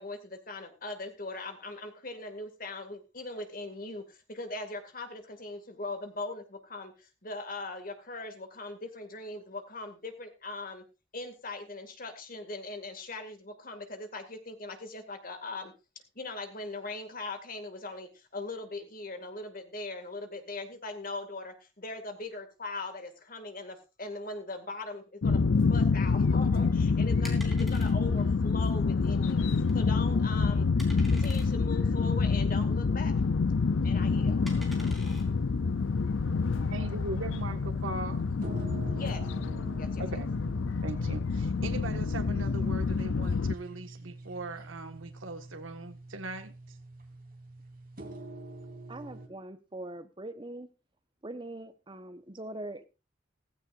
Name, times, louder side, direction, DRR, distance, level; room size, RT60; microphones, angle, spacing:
voice 1, 0.0-10.8 11.1-15.7 16.1-29.5 29.7-30.7 31.1-33.1 33.8-34.4 36.5-36.7 39.0-39.2 39.8-40.0, left 2 dB, 45° left, 2.2 m, -40 dB
sound 1, 25.2-43.5, left 4 dB, 80° left, 0.5 m, -27 dB
sound 2, 26.0-36.6, equal, ahead, 3.5 m, -51 dB
sound 3, 33.9-49.3, right 2 dB, 50° right, 2.5 m, -46 dB
voice 2, 36.7-38.2 40.0-40.3 40.8-46.6, right 2 dB, 90° right, 1.6 m, -39 dB
voice 3, 48.9-50.7 51.2-52.9, right 1 dB, 25° right, 1.1 m, -42 dB
15.5 x 15.5 x 2.6 m
head